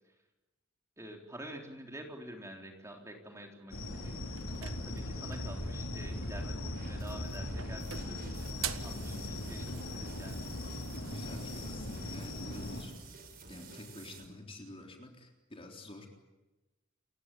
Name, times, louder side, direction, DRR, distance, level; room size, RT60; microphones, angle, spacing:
voice 1, 1.0-8.2 8.6-10.4, right 1 dB, 15° right, 2 dB, 3.7 m, -48 dB
sound 1, 3.7-12.8, left 1 dB, 75° left, 5.7 m, -39 dB
sound 2, 4.4-5.6 6.8-7.2 7.6-9.0, right 10 dB, 80° right, 1.5 m, -42 dB
sound 3, 6.7-14.3, right 3 dB, 50° right, 5.0 m, -52 dB
voice 2, 11.1-13.0 13.5-16.1, left 2 dB, 30° left, 3 dB, 3.7 m, -49 dB
29.5 x 16.5 x 9.2 m, 1.1 s
head